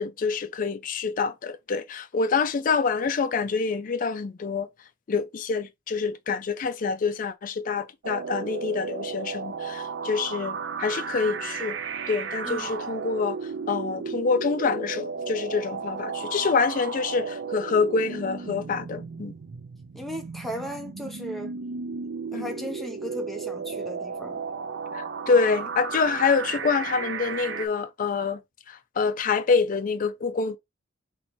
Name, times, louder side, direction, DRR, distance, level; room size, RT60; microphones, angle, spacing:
voice 1, 0.0-4.7 5.1-11.8 12.1-13.4 13.7-19.3 22.3-22.5 24.9-28.4 28.7-30.6, left 5 dB, 45° left, 0.4 m, -26 dB
sound 1, 8.0-27.7, right 5 dB, 65° right, 0.5 m, -34 dB
voice 2, 12.4-12.8 19.9-21.5 22.3-24.4, equal, ahead, 0.8 m, -36 dB
3.1 x 3.1 x 4.2 m
head